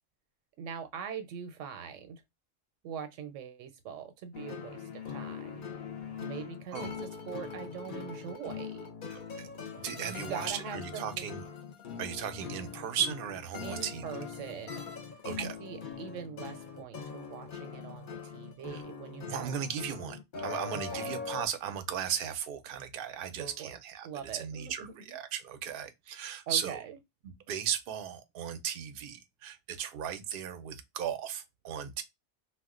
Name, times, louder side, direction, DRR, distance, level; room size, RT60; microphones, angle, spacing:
voice 1, 0.6-2.2 2.8-5.6 6.2-8.9 9.9-11.4 13.6-14.8 15.4-19.5 20.7-21.1 23.3-23.7 24.0-25.1 26.5-27.0, right 7 dB, 90° right, 1.0 m, -43 dB
sound 1, 4.3-21.5, left 6 dB, 50° left, 0.7 m, -42 dB
voice 2, 6.7-7.0 9.1-9.5 9.8-11.4 12.0-14.0 15.2-15.6 18.7-18.8 19.3-24.1 24.3-26.8 27.2-32.0, right 8 dB, 60° right, 0.6 m, -36 dB
2.3 x 2.1 x 3.6 m
omnidirectional pair, 1.2 m